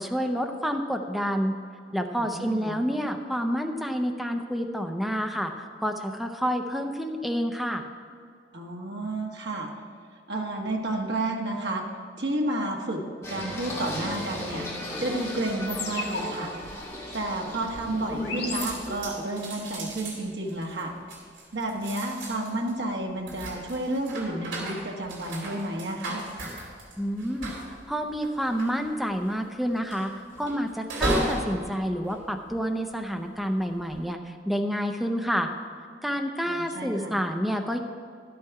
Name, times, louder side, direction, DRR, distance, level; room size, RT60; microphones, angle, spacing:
voice 1, 0.0-1.6 1.9-7.9 27.0-27.5 27.9-30.1 30.4-35.5 36.0-37.8, equal, ahead, 4 dB, 0.5 m, -29 dB
voice 2, 2.3-2.8 8.5-9.7 10.3-11.8 12.2-13.0 13.3-14.7 15.0-16.5 17.1-20.9 21.5-26.2 36.4-37.2, right 1 dB, 65° right, 0 dB, 1.3 m, -31 dB
Singing, 13.2-19.0, left 1 dB, 15° left, 2.0 m, -36 dB
sound 1, 15.7-19.3, left 4 dB, 60° left, 1.7 m, -37 dB
sound 2, 17.7-18.2 18.5-33.0 33.6-34.0, right 1 dB, 90° right, 2.8 m, -35 dB
11.5 x 8.5 x 4.7 m, 2.2 s
head